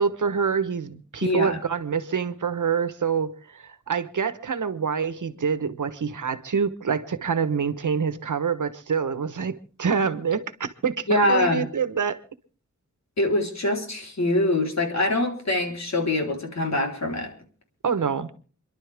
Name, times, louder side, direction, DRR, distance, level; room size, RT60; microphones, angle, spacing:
voice 1, 0.0-12.2 17.8-18.3, right 6 dB, 90° right, 1.2 m, -26 dB
voice 2, 1.2-1.6 11.1-11.6 13.2-17.3, left 1 dB, 65° left, 3.9 m, -24 dB
29.0 x 11.5 x 3.5 m
wide cardioid pair, 75°, 30 cm